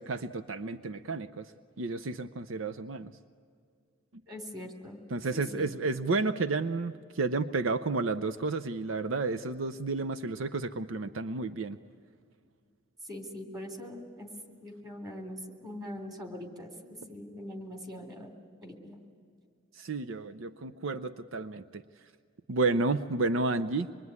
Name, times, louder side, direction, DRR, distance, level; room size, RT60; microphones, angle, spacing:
voice 1, 0.0-1.5 1.8-3.1 5.1-11.8 19.8-21.8 22.5-23.9, right 3 dB, 75° right, 10 dB, 0.7 m, -31 dB
voice 2, 4.3-5.0 5.3-5.7 13.0-14.3 14.6-18.3 18.6-19.0, left 1 dB, 20° right, 4 dB, 3.2 m, -42 dB
25.5 x 22.0 x 9.6 m, 2.3 s
head